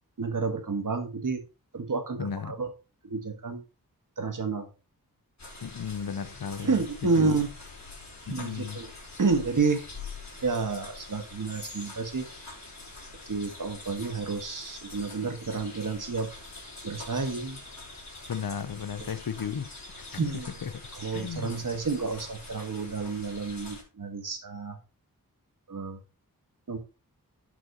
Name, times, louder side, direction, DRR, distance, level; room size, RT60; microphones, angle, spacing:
voice 1, 0.2-1.4 1.7-2.7 3.0-3.6 4.2-4.7 6.6-7.5 8.3-8.9 9.2-9.9 10.4-12.3 13.3-16.3 16.8-17.6 19.0-19.1 20.2-20.5 20.9-24.8 25.7-26.0 26.7-26.8, right 4 dB, 60° right, 1.7 m, -30 dB
voice 2, 2.2-2.5 5.6-7.3 8.3-8.8 18.3-19.7 20.0-20.2 20.6-20.7 21.1-21.7, left 7 dB, 70° left, 0.8 m, -35 dB
sound 1, 5.4-23.8, left 3 dB, 50° left, 3.4 m, -45 dB
11.0 x 6.1 x 3.0 m
wide cardioid pair, 95°, 36 cm